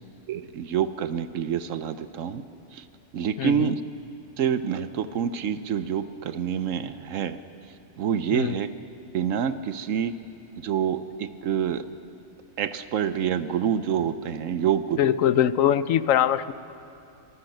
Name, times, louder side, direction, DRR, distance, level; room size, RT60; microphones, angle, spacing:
voice 1, 0.3-2.4 2.7-2.9 3.1-3.8 4.4-7.4 7.7-8.7 9.1-10.2 10.6-11.8 12.6-15.1, right 8 dB, 80° right, 12 dB, 1.1 m, -27 dB
voice 2, 3.4-3.8 8.3-8.6 15.0-16.5, left 10 dB, 85° left, 15 dB, 1.1 m, -22 dB
23.5 x 19.5 x 7.9 m, 2.7 s
omnidirectional pair, 1.3 m